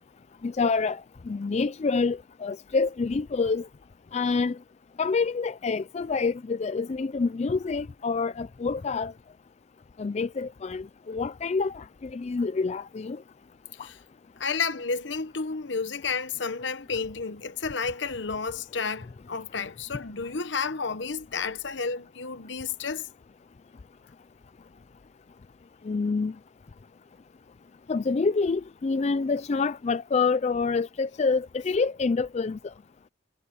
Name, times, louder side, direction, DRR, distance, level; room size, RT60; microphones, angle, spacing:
voice 1, 0.4-3.7 4.1-4.6 5.0-9.1 10.0-13.2 25.8-26.3 27.9-32.6, left 4 dB, 35° left, 0.4 m, -27 dB
voice 2, 14.4-23.1, left 5 dB, 65° left, 1.0 m, -31 dB
head